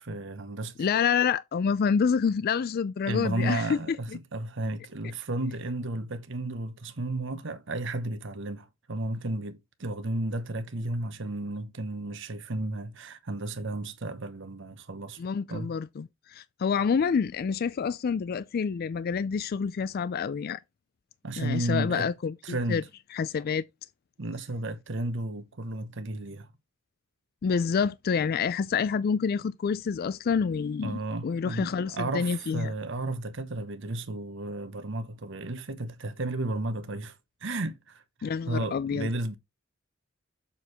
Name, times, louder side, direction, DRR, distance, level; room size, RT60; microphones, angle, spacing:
voice 1, 0.0-0.8 3.1-15.2 15.5-15.8 21.2-22.1 22.4-22.9 24.2-26.5 30.8-39.4, right 2 dB, 65° right, 1.0 m, -33 dB
voice 2, 0.8-4.0 15.2-20.6 21.3-22.8 23.1-23.6 27.4-32.7 38.2-39.1, left 6 dB, 50° left, 0.3 m, -28 dB
7.0 x 4.5 x 4.8 m
head